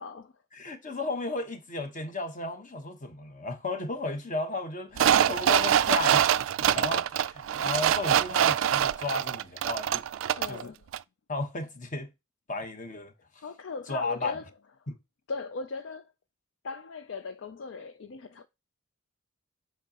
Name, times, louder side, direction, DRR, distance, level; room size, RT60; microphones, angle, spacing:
voice 1, 0.0-0.3 10.4-10.9 13.4-14.4 15.3-16.1 16.6-18.5, left 4 dB, 65° left, 0.4 m, -38 dB
voice 2, 0.5-6.3 6.6-10.0 10.4-10.7 11.3-12.1 12.5-13.4 13.9-14.4 14.9-15.0, left 2 dB, 40° left, 1.1 m, -34 dB
sound 1, 5.0-10.6 10.9-11.0, right 10 dB, 75° right, 0.3 m, -24 dB
7.6 x 5.7 x 2.9 m
head